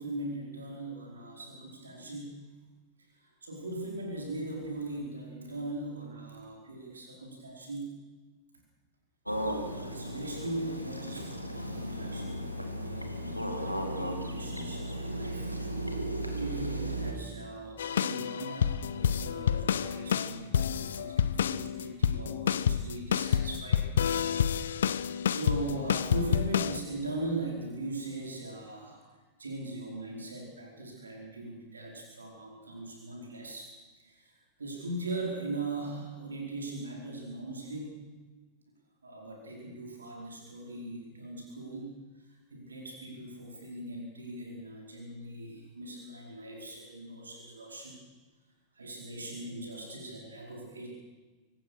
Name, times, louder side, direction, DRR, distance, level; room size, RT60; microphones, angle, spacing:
voice 1, 0.0-2.4 3.2-7.9 9.7-15.5 16.4-23.9 25.3-29.1 29.4-33.7 34.0-34.3 34.6-38.0 39.0-42.0 42.5-48.0 48.7-50.9, right 2 dB, 75° right, 0 dB, 4.9 m, -40 dB
sound 1, 9.3-17.1, right 1 dB, 90° right, 2.5 m, -35 dB
sound 2, 17.8-26.8, left 8 dB, 65° left, 0.7 m, -29 dB
25.5 x 18.5 x 6.4 m, 1.3 s
figure-of-eight pair, 90°, 0 cm